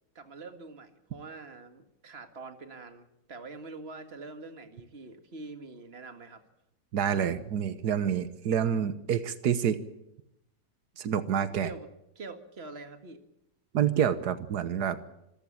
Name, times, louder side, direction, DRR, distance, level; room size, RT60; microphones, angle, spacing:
voice 1, 0.2-6.4 11.6-11.9 12.2-13.2, right 3 dB, 40° right, 7 dB, 2.1 m, -45 dB
voice 2, 6.9-9.8 11.0-11.7 13.7-15.0, right 8 dB, 85° right, 12 dB, 1.6 m, -27 dB
26.5 x 14.0 x 8.8 m, 0.83 s
omnidirectional pair, 1.7 m